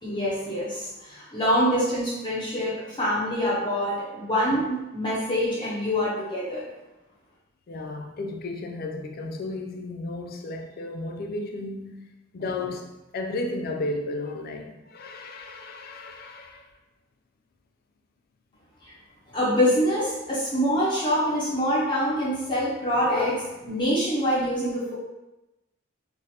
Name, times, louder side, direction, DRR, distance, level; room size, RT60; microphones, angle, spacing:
voice 1, 0.0-6.7 18.8-18.9 19.3-24.9, equal, 25° left, 0.7 m, -25 dB
voice 2, 7.7-12.1 12.3-16.7, left 2 dB, 45° left, 0.3 m, -34 dB
3.2 x 2.4 x 2.8 m
head